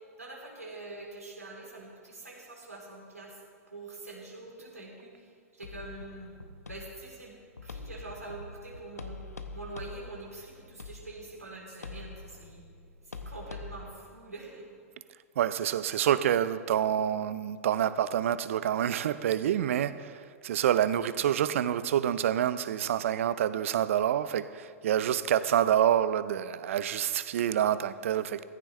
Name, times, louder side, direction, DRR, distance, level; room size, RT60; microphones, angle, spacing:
voice 1, 0.2-3.4 3.7-6.4 6.7-7.3 7.6-9.2 9.5-12.6 13.1-14.6, right 2 dB, 85° right, 3.7 m, -45 dB
sound 1, 5.6-13.9, left 3 dB, 80° left, 0.9 m, -45 dB
voice 2, 15.4-28.4, right 10 dB, 60° right, 0.6 m, -27 dB
16.5 x 15.0 x 3.3 m
figure-of-eight pair, 100°, 8 cm